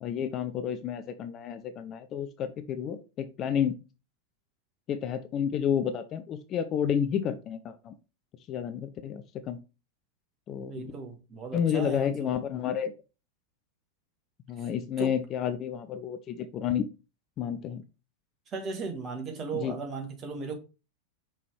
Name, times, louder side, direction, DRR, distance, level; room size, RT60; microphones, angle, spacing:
voice 1, 0.0-3.8 4.9-7.9 8.5-9.6 10.5-10.9 11.5-12.9 14.5-16.9 17.4-17.8 19.6-19.8, left 8 dB, 30° left, 0.6 m, -30 dB
voice 2, 10.6-12.3 14.6-14.7 15.0-15.2 18.5-20.5, right 4 dB, 30° right, 1.6 m, -36 dB
5.8 x 3.7 x 4.6 m
figure-of-eight pair, 90°, 0 cm